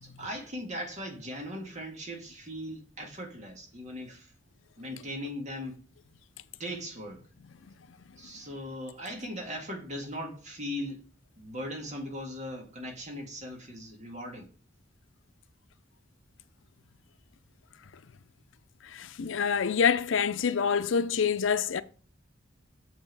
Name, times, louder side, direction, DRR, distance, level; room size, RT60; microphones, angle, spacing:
voice 1, 0.0-4.3 4.8-5.8 6.6-7.2 8.2-11.1 11.4-14.5, equal, 40° right, 1.8 m, -39 dB
voice 2, 18.9-21.8, left 6 dB, 80° left, 0.5 m, -26 dB
7.1 x 5.6 x 4.7 m
head